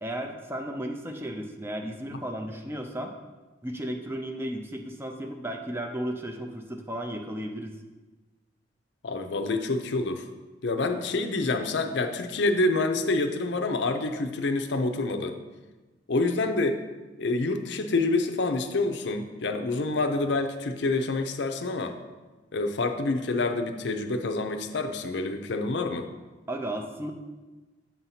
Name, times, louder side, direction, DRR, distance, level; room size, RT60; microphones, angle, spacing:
voice 1, 0.0-3.1 3.6-7.8 26.5-27.1, right 1 dB, 10° right, 4 dB, 0.4 m, -34 dB
voice 2, 9.0-10.3 10.6-15.4 16.1-16.8 17.2-22.0 22.5-26.1, left 2 dB, 65° left, 6 dB, 0.5 m, -27 dB
7.9 x 2.7 x 5.7 m, 1.2 s
head